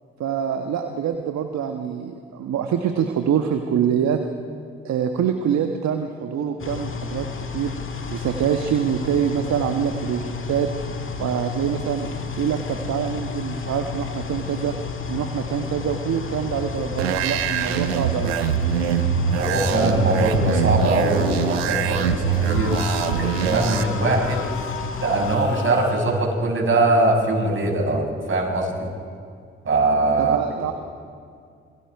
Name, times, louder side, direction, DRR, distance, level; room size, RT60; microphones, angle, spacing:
voice 1, 0.2-4.2 4.8-7.7 8.1-10.7 11.2-12.1 12.4-14.7 15.1-18.4 30.2-30.7, right 8 dB, 60° right, 5 dB, 1.3 m, -25 dB
sound 1, 6.6-25.4, left 5 dB, 40° left, 2.0 m, -32 dB
sound 2, 17.0-23.8, right 8 dB, 90° right, 0.8 m, -23 dB
voice 2, 19.4-22.8 23.1-24.4 25.0-28.9 29.6-30.4, right 2 dB, 40° right, 0 dB, 6.6 m, -22 dB
sound 3, 22.3-26.3, left 7 dB, 80° left, 2.4 m, -35 dB
27.5 x 21.0 x 4.8 m, 2.2 s
hypercardioid pair, 40°, 30 cm